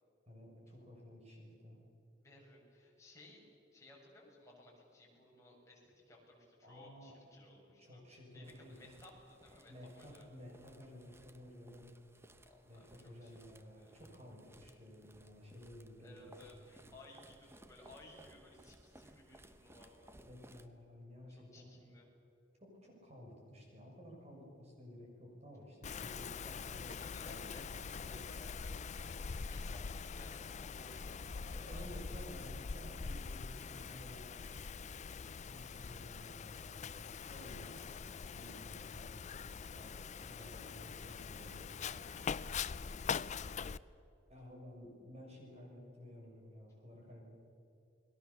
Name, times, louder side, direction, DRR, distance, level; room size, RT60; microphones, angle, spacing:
voice 1, 0.3-1.8 6.6-7.2 7.8-8.8 9.7-11.9 12.6-16.2 16.7-16.9 20.1-21.7 22.6-27.4 27.7-28.2 31.5-34.6 35.5-36.9 37.3-37.8 38.3-39.4 39.7-41.7 44.3-47.2, equal, 35° right, 0 dB, 6.6 m, -54 dB
voice 2, 2.2-3.4 3.7-10.3 12.4-14.1 16.0-20.1 21.3-22.1 25.9-32.5 35.2-35.8 37.4-38.0 40.2-40.9 41.9-43.7, left 2 dB, 15° left, -3 dB, 6.8 m, -60 dB
sound 1, 8.4-20.7, right 1 dB, 15° right, 1.0 m, -62 dB
Wind, 25.8-43.8, left 5 dB, 40° left, 0.5 m, -43 dB
29.5 x 20.5 x 7.2 m, 2.7 s
head